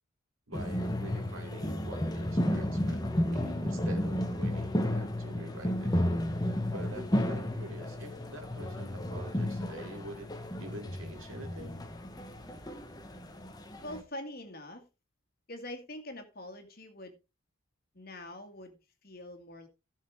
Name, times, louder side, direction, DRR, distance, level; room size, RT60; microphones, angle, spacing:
sound 1, 0.5-14.0, left 1 dB, 20° left, 1.1 m, -33 dB
voice 1, 0.5-5.9 6.7-10.3 10.6-11.9, right 1 dB, 75° right, 4 dB, 3.1 m, -46 dB
voice 2, 13.8-14.9 15.5-17.2 17.9-19.7, left 1 dB, 45° left, 5 dB, 2.1 m, -44 dB
16.0 x 6.6 x 3.6 m, 0.29 s
head